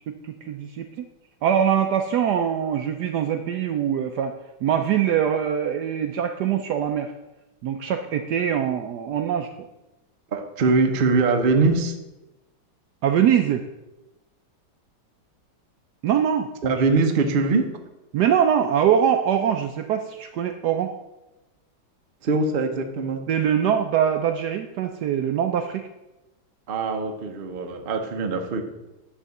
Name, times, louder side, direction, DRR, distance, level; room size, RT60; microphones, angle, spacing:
voice 1, 0.1-1.1 1.4-4.3 4.6-7.1 7.6-9.5 13.0-13.6 16.0-16.5 18.1-20.9 23.3-25.9, right 9 dB, 75° right, 6 dB, 0.9 m, -23 dB
voice 2, 10.3-12.0 16.6-17.7 22.2-23.2 26.7-28.7, right 3 dB, 50° right, 4 dB, 0.6 m, -22 dB
9.9 x 3.5 x 6.9 m, 1.0 s
omnidirectional pair, 2.2 m